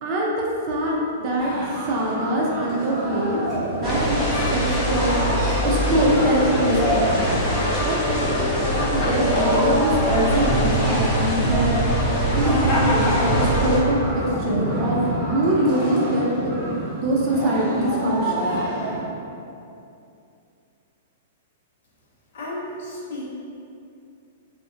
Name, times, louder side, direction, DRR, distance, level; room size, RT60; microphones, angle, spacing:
voice 1, 0.0-1.5 1.9-3.4 3.8-4.3 4.5-5.2 5.6-7.3 7.8-8.0 8.9-11.8 12.3-16.5 17.0-18.6, right 1 dB, 35° right, -3 dB, 0.4 m, -23 dB
sound 1, 1.4-19.0, right 1 dB, 5° left, 0.8 m, -30 dB
sound 2, 3.8-13.8, equal, 30° left, 0.5 m, -22 dB
voice 2, 22.3-23.2, left 1 dB, 70° left, -5 dB, 0.7 m, -33 dB
2.6 x 2.1 x 2.4 m, 2.6 s
hypercardioid pair, 145°, 0 cm